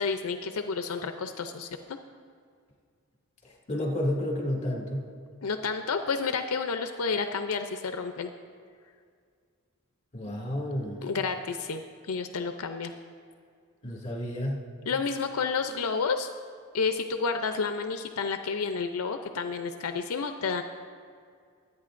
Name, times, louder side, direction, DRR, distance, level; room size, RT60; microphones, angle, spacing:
voice 1, 0.0-2.0 5.4-8.3 10.2-10.3 11.0-12.9 14.9-16.3 16.7-20.6, left 5 dB, 85° left, 7 dB, 0.5 m, -30 dB
voice 2, 3.4-5.0 10.1-11.0 13.8-14.7, left 1 dB, 35° left, -2 dB, 2.3 m, -31 dB
24.0 x 8.9 x 2.5 m, 2.1 s
head